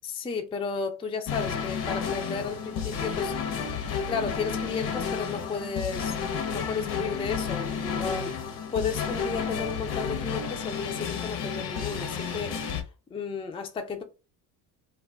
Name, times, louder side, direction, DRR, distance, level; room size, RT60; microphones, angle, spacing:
voice 1, 0.0-3.3 4.0-6.2 6.5-12.6 13.1-14.0, left 5 dB, 15° left, 0.3 m, -33 dB
sound 1, 1.3-12.8, left 6 dB, 55° left, 0.7 m, -31 dB
2.3 x 2.1 x 3.4 m
cardioid pair, 95°, 44 cm